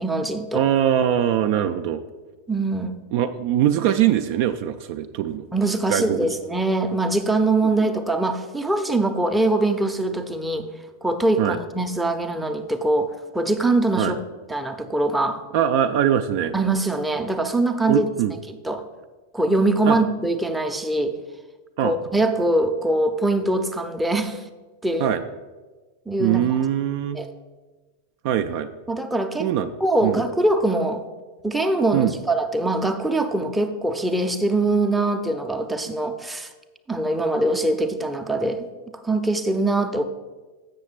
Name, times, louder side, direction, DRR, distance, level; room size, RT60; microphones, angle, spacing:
voice 1, 0.0-0.7 2.5-3.0 5.5-10.7 11.0-14.2 14.5-15.4 16.5-18.1 18.6-18.8 19.3-21.2 21.8-24.4 24.8-25.2 26.1-26.4 27.1-27.3 28.9-29.5 29.8-31.0 31.4-36.5 36.9-38.7 39.0-40.0, right 2 dB, 5° right, 5 dB, 0.6 m, -23 dB
voice 2, 0.5-2.0 3.1-5.5 5.9-6.3 11.4-11.6 14.0-14.1 15.5-16.5 17.9-18.3 19.9-20.0 21.8-22.0 25.0-25.2 26.2-27.2 28.2-28.7 29.4-29.7 30.0-30.2 31.9-32.2, right 10 dB, 45° right, 8 dB, 0.3 m, -22 dB
7.6 x 6.4 x 4.3 m, 1.3 s
figure-of-eight pair, 90°, 0 cm